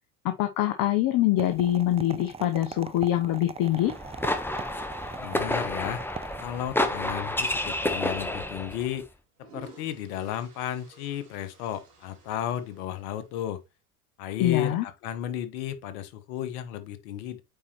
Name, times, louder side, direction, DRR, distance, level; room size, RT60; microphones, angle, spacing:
voice 1, 0.2-3.9 14.4-14.8, left 13 dB, 50° left, 0.9 m, -24 dB
sound 1, 1.4-6.8, right 5 dB, 15° right, 0.5 m, -41 dB
sound 2, 3.8-8.9, left 1 dB, 5° left, 1.0 m, -30 dB
voice 2, 5.2-6.0 6.4-9.1 9.4-13.6 14.2-17.4, left 11 dB, 70° left, 1.3 m, -33 dB
sound 3, 9.2-13.7, right 3 dB, 85° right, 2.7 m, -53 dB
8.6 x 4.4 x 3.0 m
hypercardioid pair, 75°, 45 cm